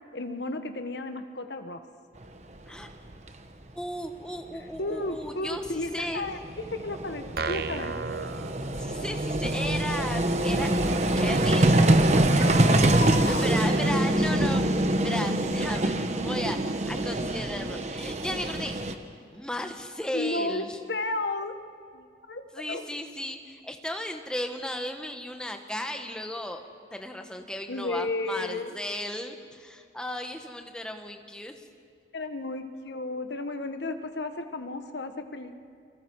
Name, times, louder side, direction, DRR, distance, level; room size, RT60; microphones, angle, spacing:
voice 1, 0.1-1.8 4.8-6.4 6.7-7.9 12.4-13.4 20.1-21.5 21.9-22.4 22.7-22.8 27.7-28.7 32.1-35.6, left 2 dB, 75° left, 7 dB, 1.3 m, -33 dB
Vehicle, 2.8-2.9 3.1-3.3 5.3-5.4 5.6-18.9, right 1 dB, 40° right, 1.0 m, -25 dB
voice 2, 3.7-6.2 8.8-10.7 11.1-11.7 13.3-14.6 15.0-18.8 19.3-20.8 22.5-26.6 26.9-31.6, left 1 dB, 5° left, 5 dB, 1.2 m, -35 dB
sound 1, 7.4-9.3, right 5 dB, 55° right, 0.6 m, -34 dB
Train, 9.0-16.0 16.5-16.6 16.8-16.9, right 3 dB, 75° right, 1.9 m, -40 dB
29.5 x 24.0 x 4.7 m, 2.2 s
head